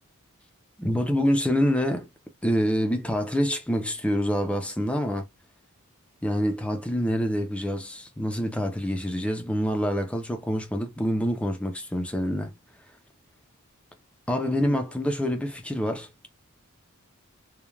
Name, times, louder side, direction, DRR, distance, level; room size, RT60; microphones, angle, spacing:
voice 1, 0.8-2.1 2.4-5.3 6.2-12.5 14.3-16.3, equal, 5° left, 0.5 m, -26 dB
3.1 x 2.2 x 2.3 m
head